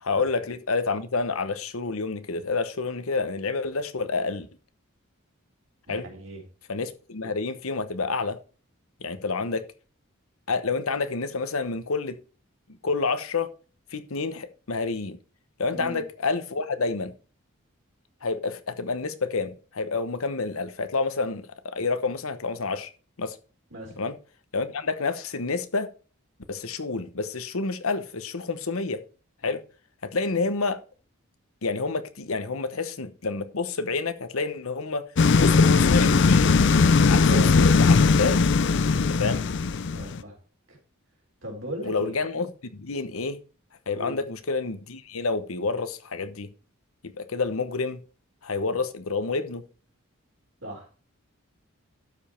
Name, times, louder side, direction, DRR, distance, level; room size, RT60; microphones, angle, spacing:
voice 1, 0.0-4.5 5.9-6.1 6.7-8.4 9.0-9.6 10.5-12.2 12.8-13.5 13.9-15.2 15.6-17.1 18.2-22.9 23.2-23.4 24.0-24.2 24.5-25.9 26.5-29.0 29.4-29.6 30.0-30.8 31.6-35.0 35.4-36.6 37.1-38.4 39.1-39.4 41.8-43.4 43.9-46.5 47.0-48.0 48.4-49.6, left 4 dB, 80° left, 1.0 m, -29 dB
voice 2, 5.9-6.4 15.7-16.0 23.7-24.0 37.2-37.5 39.1-39.5 39.9-40.4 40.7-40.8 41.4-42.2 43.9-44.2 50.6-50.9, right 1 dB, 65° right, 4.0 m, -38 dB
sound 1, 35.2-40.2, left 4 dB, 55° left, 0.5 m, -19 dB
12.0 x 5.2 x 4.4 m
head